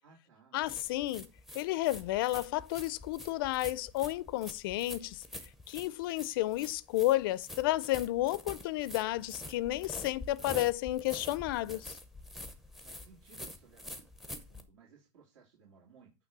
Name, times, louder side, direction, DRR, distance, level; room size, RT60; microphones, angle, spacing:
voice 1, 0.0-0.6 12.8-16.1, right 6 dB, 75° right, 2.9 m, -60 dB
voice 2, 0.5-1.3 1.5-5.2 5.7-12.0, left 16 dB, 45° left, 0.4 m, -32 dB
sound 1, 0.6-14.6, left 1 dB, ahead, 0.6 m, -46 dB
9.1 x 3.1 x 5.9 m
supercardioid pair, 165°, 16 cm